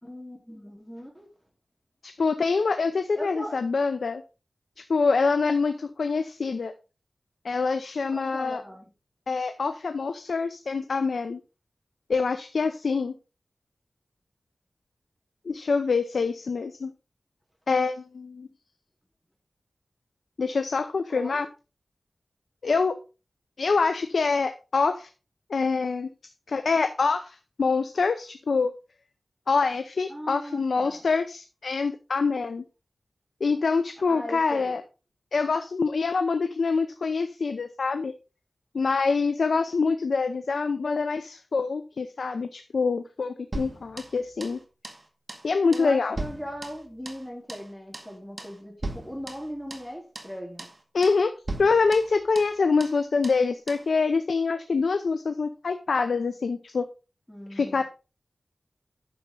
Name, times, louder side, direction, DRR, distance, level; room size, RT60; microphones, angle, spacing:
voice 1, 0.0-1.3 3.2-3.6 8.1-8.9 21.1-21.4 30.1-31.1 34.1-34.8 45.7-50.7 57.3-57.8, equal, 5° left, 3.9 m, -39 dB
voice 2, 2.0-4.2 4.8-6.7 7.4-8.6 9.3-11.4 12.1-13.1 15.5-16.9 17.7-18.5 20.4-21.5 22.6-23.0 23.6-25.1 25.5-26.1 26.5-28.7 29.5-32.6 33.4-34.8 35.3-38.1 38.7-44.6 45.4-46.2 50.9-51.3 51.6-56.9 57.5-57.8, left 4 dB, 90° left, 0.7 m, -25 dB
sound 1, 43.5-44.6 44.8-45.0 45.3-45.5 45.7-47.2 47.5-47.7 47.9-48.1 48.4-48.6 48.8-49.9 50.2-50.3 50.6-50.8 51.0-51.2 51.5-52.6 52.8-53.0 53.2-53.4 53.7-53.9, right 2 dB, 40° right, 2.0 m, -38 dB
10.5 x 6.8 x 3.9 m
wide cardioid pair, 80°, 0 cm